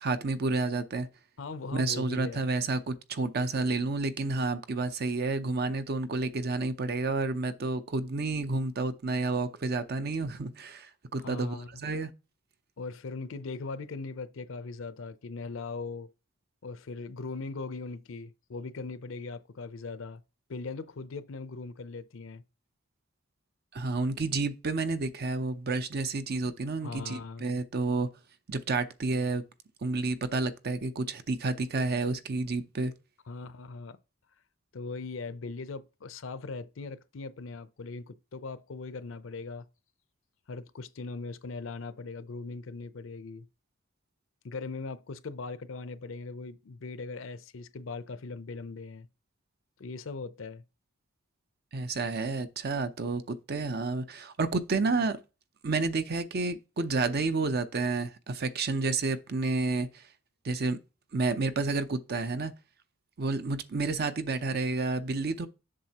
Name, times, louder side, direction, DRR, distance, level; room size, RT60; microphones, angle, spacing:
voice 1, 0.0-1.1 1.7-12.1 23.7-28.1 28.5-29.4 29.8-32.9 51.7-55.2 55.6-60.0 60.4-60.8 61.1-62.5 63.2-65.5, right 3 dB, 50° right, 0.6 m, -30 dB
voice 2, 1.4-2.4 11.2-11.8 12.8-16.1 16.6-20.2 20.5-22.4 26.8-27.5 33.3-34.0 34.7-39.6 40.5-43.5 44.4-49.1 49.8-50.6, left 3 dB, 70° left, 0.5 m, -40 dB
7.5 x 6.4 x 2.9 m
head